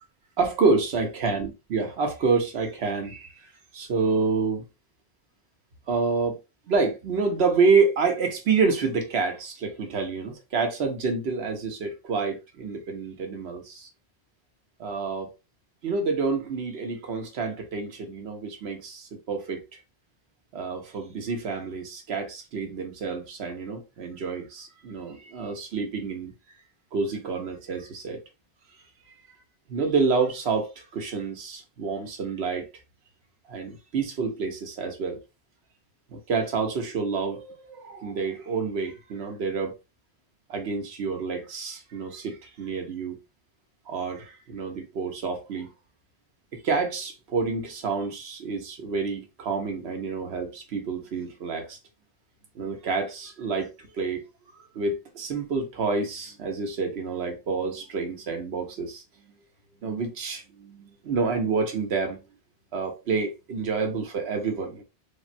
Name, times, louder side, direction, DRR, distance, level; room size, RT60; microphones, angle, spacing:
voice 1, 0.4-4.7 5.9-6.4 6.7-13.9 14.8-15.3 15.8-19.6 20.5-26.3 26.9-28.2 29.7-32.7 33.5-35.2 36.1-39.8 40.5-43.2 43.9-45.7 46.5-51.8 52.5-54.2 54.7-59.3 59.8-62.3 62.7-64.8, right 4 dB, 85° right, 1.1 m, -28 dB
3.6 x 2.1 x 2.5 m
omnidirectional pair, 1.0 m